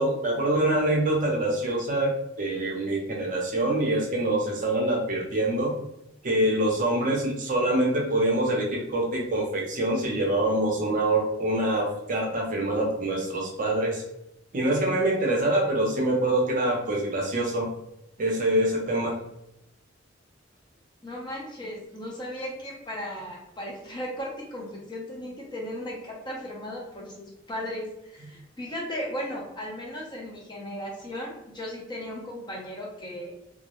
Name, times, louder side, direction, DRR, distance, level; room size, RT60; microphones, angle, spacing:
voice 1, 0.0-2.1 2.4-5.7 6.2-14.0 14.5-17.7 18.2-19.2, right 1 dB, 45° right, -1 dB, 0.5 m, -25 dB
voice 2, 21.0-33.3, equal, 25° left, -2 dB, 0.6 m, -36 dB
2.3 x 2.0 x 2.9 m, 0.84 s
head